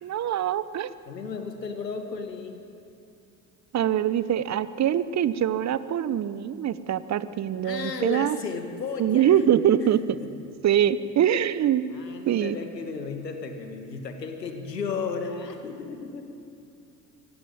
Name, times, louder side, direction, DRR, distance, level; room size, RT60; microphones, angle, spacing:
voice 1, 0.0-0.9 3.7-8.4 9.0-10.2 10.6-11.8 12.3-12.6, right 10 dB, 35° right, 15 dB, 1.1 m, -23 dB
voice 2, 1.1-2.6 7.6-9.4 9.9-10.3 11.9-16.2, left 4 dB, 85° left, 6 dB, 2.2 m, -34 dB
25.0 x 17.5 x 9.1 m, 2.5 s
figure-of-eight pair, 65°, 48 cm